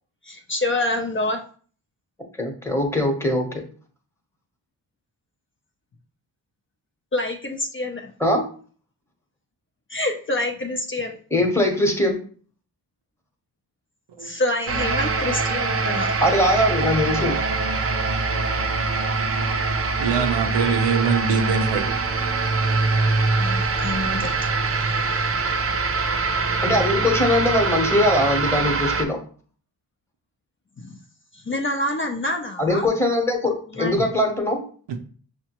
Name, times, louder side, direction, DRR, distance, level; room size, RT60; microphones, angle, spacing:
voice 1, 0.2-1.4 7.1-8.1 9.9-11.2 14.2-16.1 23.4-24.3 30.8-31.0 31.3-32.9 33.7-34.0, left 1 dB, 30° left, 0.5 m, -27 dB
voice 2, 2.4-3.5 8.2-8.4 11.3-12.2 16.2-17.4 26.6-29.2 32.6-34.6, left 1 dB, 5° left, 1.0 m, -21 dB
sound 1, 14.7-29.0, right 3 dB, 35° right, 0.5 m, -23 dB
voice 3, 20.0-21.9, right 6 dB, 70° right, 0.7 m, -23 dB
5.5 x 2.1 x 2.9 m
cardioid pair, 60°, 43 cm